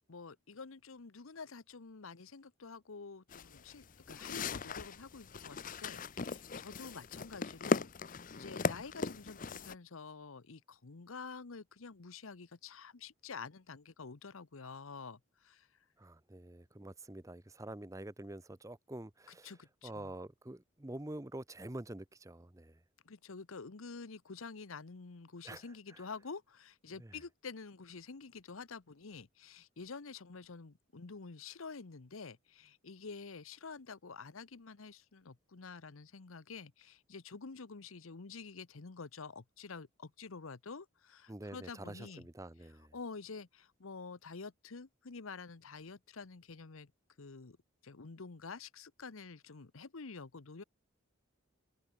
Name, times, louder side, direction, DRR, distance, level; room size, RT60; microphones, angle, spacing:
voice 1, 0.1-15.7 19.4-20.1 23.0-42.2 42.9-46.9 47.2-47.6 47.8-50.6, left 4 dB, 85° left, 0.9 m, -48 dB
sound 1, 3.3-9.7, left 4 dB, 40° left, 0.6 m, -38 dB
voice 2, 16.0-19.5 19.8-22.8 25.4-26.0 27.0-27.2 41.3-42.9, right 1 dB, 15° right, 0.7 m, -47 dB
head